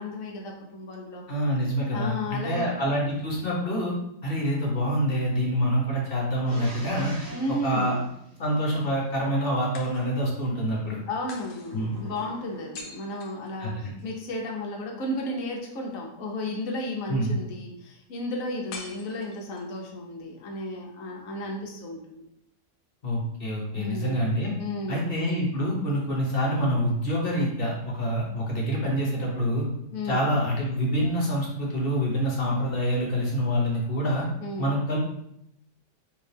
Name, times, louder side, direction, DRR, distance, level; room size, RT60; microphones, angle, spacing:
voice 1, 0.0-1.2 1.9-2.7 7.3-8.0 11.1-22.3 23.7-25.1 29.9-30.2 34.4-34.7, left 1 dB, 60° left, 1 dB, 1.1 m, -33 dB
voice 2, 1.3-3.9 4.2-7.1 7.5-7.9 8.4-11.0 11.7-11.9 13.6-13.9 17.1-17.3 23.0-24.5 24.9-29.7 30.0-34.2 34.6-35.0, equal, 40° left, -3 dB, 1.0 m, -26 dB
sound 1, 6.4-9.2 11.6-13.0, right 1 dB, 65° right, 2.3 m, -45 dB
sound 2, 9.7-10.5 11.3-14.1 18.7-19.8, left 4 dB, 75° left, 1.3 m, -46 dB
4.5 x 2.8 x 3.3 m, 0.74 s
omnidirectional pair, 1.9 m